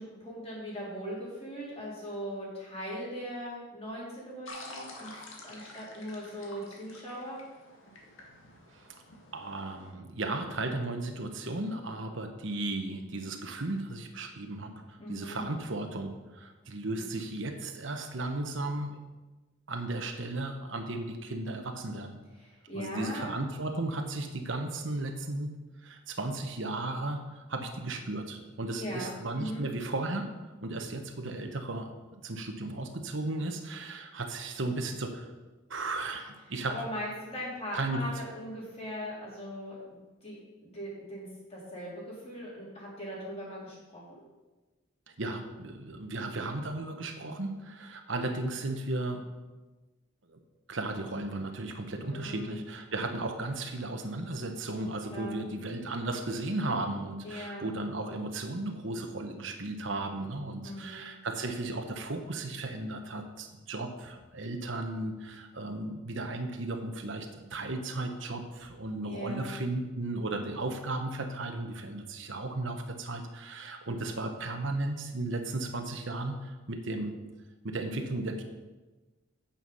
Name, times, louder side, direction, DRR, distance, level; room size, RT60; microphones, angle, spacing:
voice 1, 0.0-7.4 15.0-15.4 16.9-17.0 22.4-23.3 28.8-29.7 36.7-40.4 40.6-44.2 52.1-52.5 55.1-55.4 57.2-57.7 60.6-61.0 69.0-69.5, equal, 30° left, -6 dB, 3.8 m, -40 dB
sound 1, 4.5-9.9, left 2 dB, 85° left, 2.0 m, -49 dB
voice 2, 9.3-19.0 19.7-22.1 22.7-25.5 25.8-30.3 30.6-35.3 35.7-36.8 37.7-38.1 45.2-49.3 50.3-50.4 50.7-77.1 77.6-78.4, right 2 dB, 70° right, 4 dB, 1.1 m, -35 dB
9.1 x 7.1 x 5.6 m, 1.2 s
head